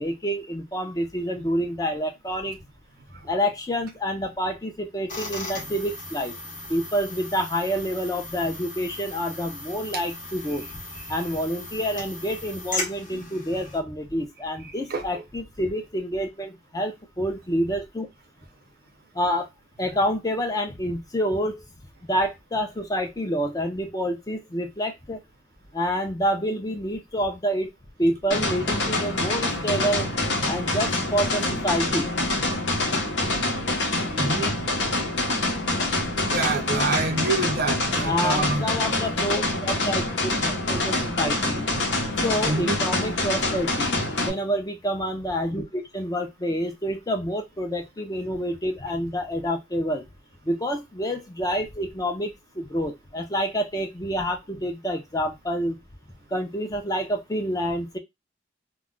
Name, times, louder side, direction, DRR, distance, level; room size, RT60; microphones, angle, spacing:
voice 1, 0.0-2.6 3.2-6.3 6.7-10.7 11.1-18.1 19.1-19.5 19.8-21.6 22.0-25.2 25.7-27.7 28.0-30.1 30.5-32.1 38.0-40.4 40.6-41.6 42.2-50.0 50.4-55.8 56.3-58.0, equal, 20° left, 0.5 m, -28 dB
sound 1, 5.1-13.8, left 2 dB, 45° left, 0.8 m, -37 dB
sound 2, 28.3-44.3, left 2 dB, 70° left, 0.8 m, -26 dB
voice 2, 34.1-34.5 36.3-38.6 42.5-42.8, right 3 dB, 55° right, 0.6 m, -26 dB
2.3 x 2.1 x 3.6 m
head